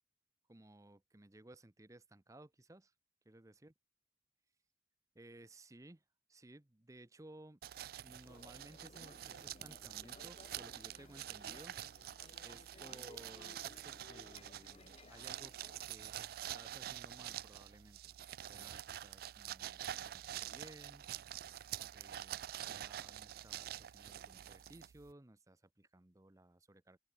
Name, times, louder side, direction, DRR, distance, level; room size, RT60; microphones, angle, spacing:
voice 1, 0.5-2.9 3.2-3.7 5.1-6.0 6.3-7.6 8.0-11.7 12.4-15.5 15.8-21.0 21.9-27.0, right 1 dB, 20° right, 0.8 m, -59 dB
sound 1, 7.6-25.1, right 11 dB, 55° right, 0.3 m, -47 dB
sound 2, 8.2-15.9, left 3 dB, 35° left, 0.4 m, -60 dB
open air
head